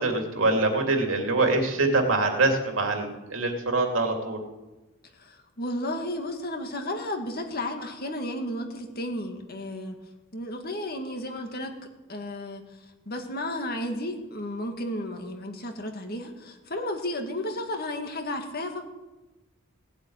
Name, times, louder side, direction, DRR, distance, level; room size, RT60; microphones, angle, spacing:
voice 1, 0.0-4.4, right 2 dB, 70° right, 3 dB, 2.7 m, -24 dB
voice 2, 5.1-10.0 10.3-11.8 12.1-18.8, left 1 dB, 50° left, 4 dB, 2.2 m, -33 dB
17.5 x 8.0 x 9.6 m, 1.1 s
head